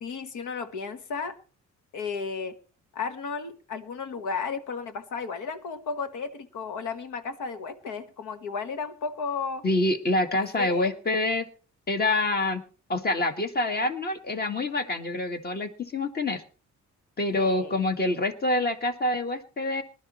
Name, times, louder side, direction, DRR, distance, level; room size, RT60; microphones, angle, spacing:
voice 1, 0.0-1.4 1.9-2.6 2.9-9.6 10.6-10.9 17.4-17.8, left 5 dB, 80° left, 10 dB, 1.5 m, -34 dB
voice 2, 9.6-11.5 11.9-12.6 12.9-16.4 17.2-19.8, left 2 dB, 30° left, 7 dB, 1.7 m, -26 dB
19.5 x 12.0 x 3.1 m, 0.37 s
cardioid pair, 90°, 30 cm